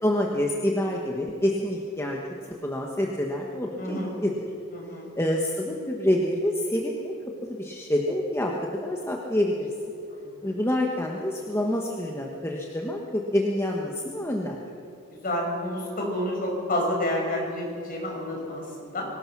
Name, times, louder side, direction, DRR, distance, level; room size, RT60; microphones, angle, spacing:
voice 1, 0.0-4.3 5.2-7.1 7.4-8.5 8.8-9.7 10.4-14.6, left 1 dB, 10° left, -1 dB, 1.3 m, -27 dB
voice 2, 3.8-4.1 4.7-5.1 10.1-10.5 15.2-19.1, left 1 dB, 40° left, -1 dB, 5.9 m, -29 dB
23.5 x 19.5 x 6.0 m, 2.6 s
head